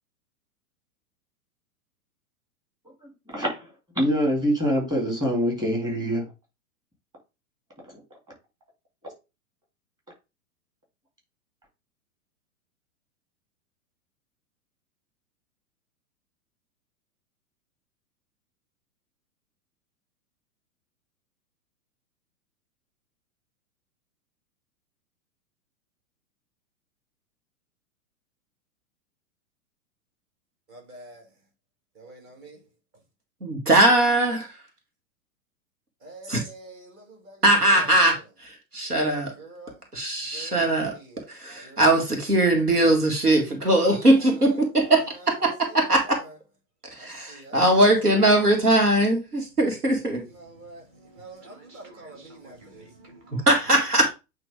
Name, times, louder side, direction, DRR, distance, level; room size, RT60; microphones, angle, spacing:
voice 1, 3.3-3.6 4.0-6.3 7.9-8.0, equal, 10° right, 2.8 m, -24 dB
voice 2, 30.7-31.2 32.0-32.6 36.0-37.4 37.7-38.2 39.4-39.8 40.3-41.3 41.6-41.9 44.0-46.3 47.0-48.2 50.3-53.5, right 2 dB, 30° right, 2.5 m, -46 dB
voice 3, 33.4-34.5 36.3-36.4 37.4-39.3 39.9-40.9 41.3-45.0 45.4-45.5 45.7-46.0 47.0-50.3 53.5-54.1, right 1 dB, 85° right, 2.0 m, -20 dB
8.8 x 3.2 x 3.5 m
figure-of-eight pair, 105°, 44 cm